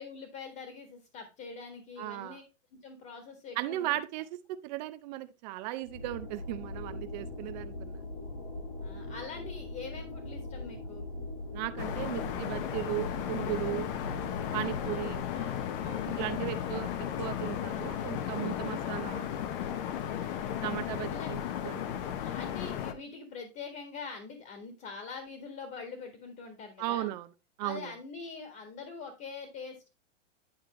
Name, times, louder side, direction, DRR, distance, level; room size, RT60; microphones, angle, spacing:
voice 1, 0.0-2.4 2.8-4.0 8.8-11.1 16.4-16.8 20.1-20.4 21.1-21.3 22.2-27.1 27.6-29.9, left 5 dB, 30° left, 1.7 m, -44 dB
voice 2, 2.0-2.4 3.6-8.0 11.5-13.9 14.5-15.2 16.1-16.9 17.2-19.3 20.6-21.4 21.6-22.0 26.8-27.3 27.6-27.9, right 16 dB, 35° right, 0.5 m, -36 dB
sound 1, 5.8-15.2, left 2 dB, 90° left, 5.0 m, -41 dB
sound 2, 11.8-22.9, left 9 dB, 45° left, 0.9 m, -35 dB
sound 3, 14.8-18.1, right 10 dB, 65° right, 1.9 m, -55 dB
10.5 x 4.6 x 3.1 m
hypercardioid pair, 140°, 38 cm